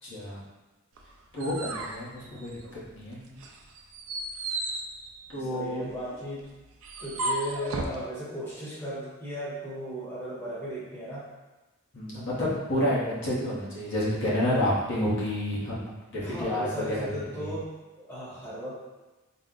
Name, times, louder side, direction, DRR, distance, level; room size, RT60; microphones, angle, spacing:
voice 1, 0.0-0.4 1.3-3.4 5.3-5.9 11.9-17.5, left 1 dB, 55° left, -7 dB, 0.9 m, -30 dB
sound 1, 1.0-3.0 3.4-8.0, right 2 dB, 65° right, 0.4 m, -35 dB
voice 2, 5.4-6.5 7.0-11.3 16.2-18.7, equal, 10° left, -9 dB, 0.9 m, -36 dB
4.1 x 2.1 x 3.7 m, 1.1 s
head